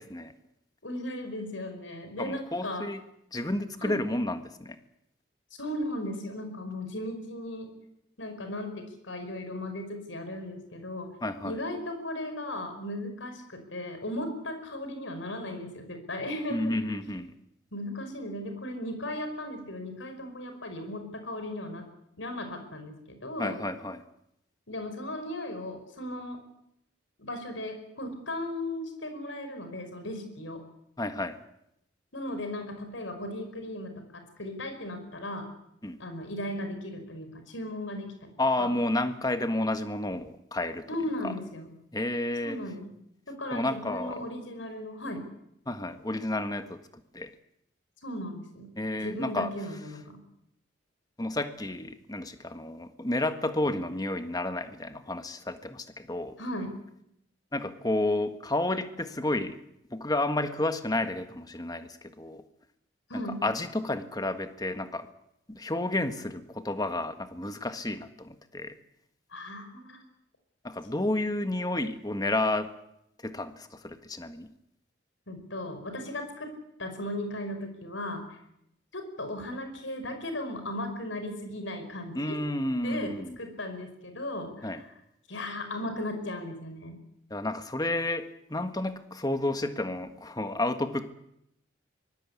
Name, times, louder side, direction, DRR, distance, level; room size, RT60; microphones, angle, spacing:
voice 1, 0.8-2.9 3.8-4.0 5.6-7.7 8.2-11.1 11.4-16.8 17.7-21.8 22.2-23.6 24.7-26.4 27.2-30.6 32.1-35.5 36.0-38.3 38.6-38.7 40.9-41.7 42.4-42.9 43.3-45.3 48.0-48.7 49.0-50.2 56.4-56.8 63.1-63.4 69.3-70.0 75.3-76.5 76.8-78.4 78.9-82.4 82.8-84.9 85.3-87.0, left 1 dB, 85° left, 6 dB, 5.5 m, -36 dB
voice 2, 2.2-3.0 3.3-4.8 11.2-11.6 16.5-17.3 23.4-24.0 31.0-31.4 35.8-36.0 38.4-40.9 41.2-41.3 41.9-42.6 43.5-44.2 45.7-46.8 47.1-47.3 48.8-49.5 51.2-56.4 57.5-59.6 59.9-62.4 63.1-65.1 65.5-68.7 70.6-72.7 73.2-74.5 82.1-83.4 84.6-84.8 87.3-91.1, left 2 dB, 20° left, 8 dB, 1.5 m, -31 dB
24.0 x 19.5 x 8.4 m, 0.79 s
head